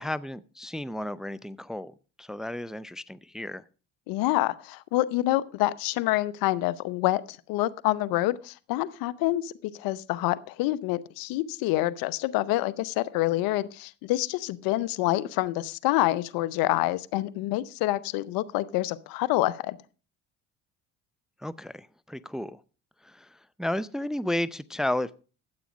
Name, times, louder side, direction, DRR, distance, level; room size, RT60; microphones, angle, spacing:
voice 1, 0.0-3.6 21.4-22.6 23.0-25.1, left 1 dB, ahead, 16 dB, 0.5 m, -33 dB
voice 2, 4.1-19.8, left 16 dB, 70° left, 19 dB, 0.8 m, -27 dB
13.0 x 8.4 x 5.2 m, 0.37 s
hypercardioid pair, 65°, 36 cm